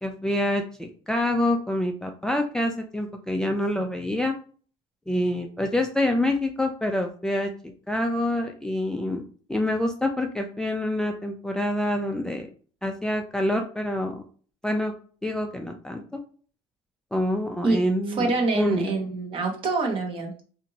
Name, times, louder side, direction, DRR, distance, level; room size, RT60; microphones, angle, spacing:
voice 1, 0.0-4.4 5.1-9.2 9.5-12.5 12.8-14.2 14.6-14.9 15.2-16.0 17.1-18.9, left 1 dB, 5° left, 3 dB, 0.3 m, -26 dB
voice 2, 18.1-20.3, right 3 dB, 45° right, 2 dB, 0.9 m, -26 dB
2.8 x 2.5 x 2.7 m, 0.42 s
supercardioid pair, 105°, 12 cm